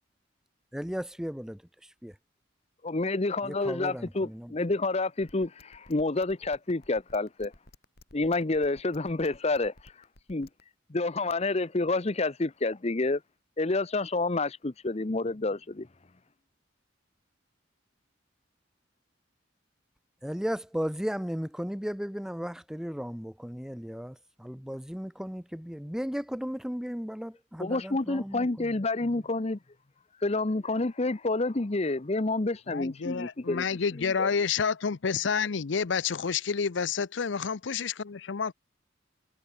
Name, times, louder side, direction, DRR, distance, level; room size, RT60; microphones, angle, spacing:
voice 1, 0.7-1.6 2.0-2.1 3.4-4.5 20.2-28.7 29.1-29.2, equal, 5° right, 0.6 m, -35 dB
voice 2, 2.8-7.5 8.1-9.7 10.3-10.5 10.9-13.2 13.6-15.9 27.6-29.6 30.2-33.6 34.0-34.3, left 2 dB, 35° left, 0.8 m, -29 dB
sound 1, 5.2-10.6, left 2 dB, 55° left, 3.6 m, -54 dB
voice 3, 32.7-38.5, left 6 dB, 70° left, 0.6 m, -29 dB
head